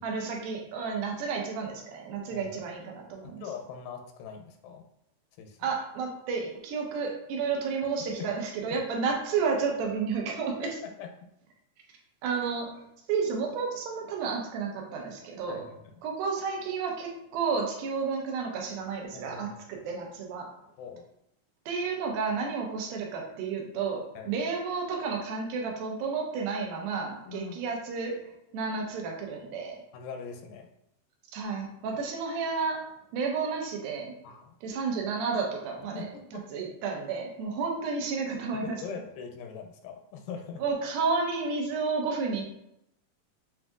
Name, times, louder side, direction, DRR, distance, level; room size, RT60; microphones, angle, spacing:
voice 1, 0.0-3.4 5.6-10.7 12.2-12.8 13.1-15.7 16.0-19.5 19.9-20.5 21.7-28.3 28.5-29.8 31.3-32.8 33.1-34.1 34.6-36.1 36.3-38.8 40.6-42.4, right 5 dB, 85° right, 1 dB, 2.6 m, -31 dB
voice 2, 3.2-4.9 5.4-5.7 8.1-8.3 10.6-11.1 15.5-15.9 19.1-19.4 19.8-19.9 20.8-21.1 24.2-24.3 27.3-27.6 29.9-30.7 31.9-32.0 34.2-34.5 35.9-36.5 38.6-40.6, left 6 dB, 85° left, 4 dB, 2.3 m, -42 dB
7.4 x 2.6 x 2.3 m, 0.80 s
omnidirectional pair, 4.1 m